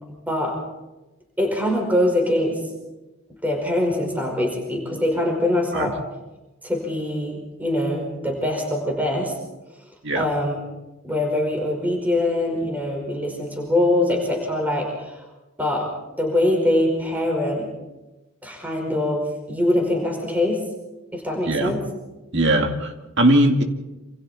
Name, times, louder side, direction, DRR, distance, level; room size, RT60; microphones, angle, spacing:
voice 1, 0.3-0.6 1.4-2.6 3.4-5.9 6.6-9.4 10.1-10.6 11.0-15.2 15.6-15.9 16.2-17.7 18.4-20.6 21.1-21.8, left 1 dB, 10° right, 1 dB, 5.2 m, -23 dB
voice 2, 22.3-23.6, right 1 dB, 55° right, 4 dB, 2.5 m, -20 dB
28.0 x 27.0 x 4.4 m, 1.0 s
head